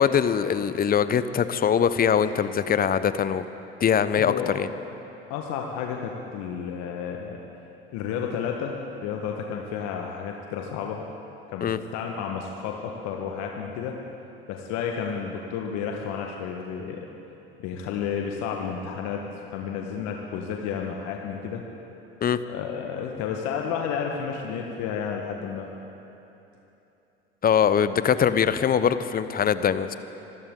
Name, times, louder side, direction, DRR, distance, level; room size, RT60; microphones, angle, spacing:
voice 1, 0.0-3.4 3.8-4.7 11.6-11.8 22.2-22.4 27.4-29.9, left 8 dB, 30° left, 13 dB, 0.8 m, -22 dB
voice 2, 4.2-4.6 5.3-7.4 7.9-11.0 11.5-14.0 14.5-17.1 17.6-19.2 19.5-21.6 22.4-25.7, left 7 dB, 60° left, 1 dB, 1.4 m, -31 dB
26.0 x 14.0 x 3.8 m, 3.0 s
hypercardioid pair, 65°, 31 cm